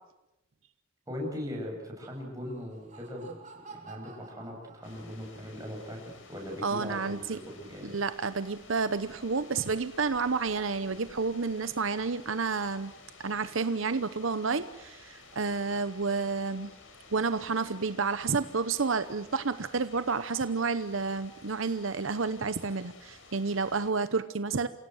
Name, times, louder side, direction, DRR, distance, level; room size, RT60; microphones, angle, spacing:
voice 1, 1.1-3.4 3.8-8.0, left 1 dB, 15° right, 0 dB, 7.6 m, -39 dB
Laughter, 2.3-5.4, right 4 dB, 35° right, 3.9 m, -51 dB
sound 1, 4.8-23.9, left 3 dB, 70° left, 4.1 m, -53 dB
voice 2, 6.6-7.4 7.8-12.9 13.2-16.7 17.1-24.7, right 4 dB, 75° right, 12 dB, 0.9 m, -30 dB
28.0 x 17.0 x 8.0 m, 0.93 s
head